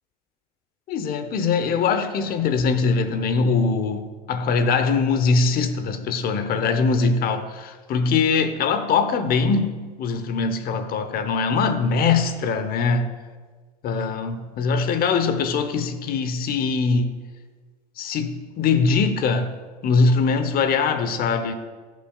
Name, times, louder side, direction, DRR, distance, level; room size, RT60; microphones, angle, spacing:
voice 1, 0.9-13.1 13.8-17.1 18.0-19.5 19.8-21.6, left 4 dB, 45° left, 0.9 m, -22 dB
14.0 x 5.8 x 2.4 m
hypercardioid pair, 90°, 20 cm